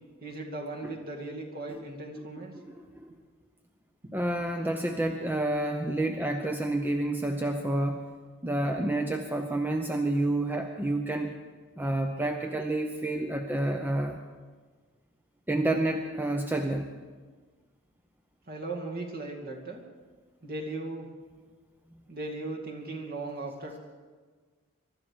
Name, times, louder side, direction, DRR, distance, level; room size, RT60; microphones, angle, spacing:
voice 1, 0.2-2.6 18.5-19.8 20.4-21.1 22.1-23.8, right 2 dB, 45° right, 0 dB, 2.4 m, -37 dB
voice 2, 2.5-3.1 4.1-8.0 8.4-11.3 11.8-14.2 15.5-16.9, right 1 dB, 10° right, 4 dB, 0.7 m, -29 dB
23.0 x 12.5 x 4.9 m, 1.5 s
head